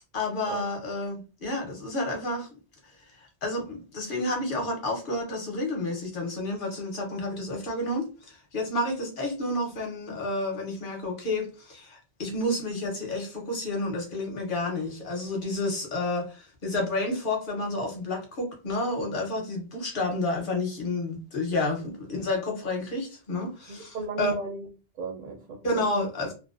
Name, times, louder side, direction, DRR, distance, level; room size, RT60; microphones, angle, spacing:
voice 1, 0.1-2.5 3.2-24.3 25.6-26.3, left 2 dB, 50° left, 0.8 m, -30 dB
voice 2, 23.7-24.7 25.0-26.1, right 4 dB, 60° right, 0.5 m, -36 dB
2.4 x 2.1 x 2.3 m
omnidirectional pair, 1.2 m